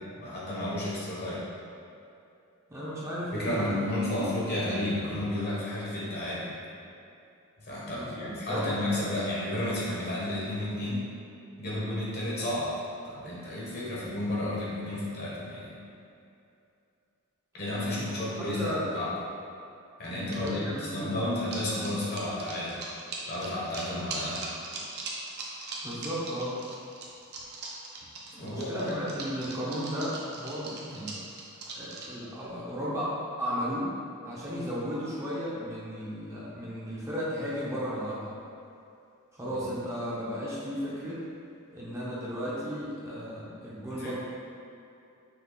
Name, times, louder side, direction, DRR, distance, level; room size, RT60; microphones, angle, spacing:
voice 1, 0.0-1.5 3.3-6.5 7.6-11.1 11.6-12.7 13.0-15.8 17.5-19.1 20.0-22.8 23.3-24.5 28.4-28.9 39.5-39.6 43.9-44.1, left 1 dB, 50° left, -6 dB, 1.1 m, -32 dB
voice 2, 2.7-3.9 4.2-4.4 7.9-8.7 17.7-18.1 18.4-18.8 20.1-21.2 25.8-26.6 28.3-31.1 31.7-33.1 33.4-33.9 34.2-38.3 39.3-41.2 41.7-44.1, equal, 15° right, -8 dB, 0.7 m, -34 dB
sound 1, 20.0-20.5 21.3-32.1, right 3 dB, 50° right, 0.6 m, -40 dB
5.7 x 2.3 x 3.9 m, 2.6 s
head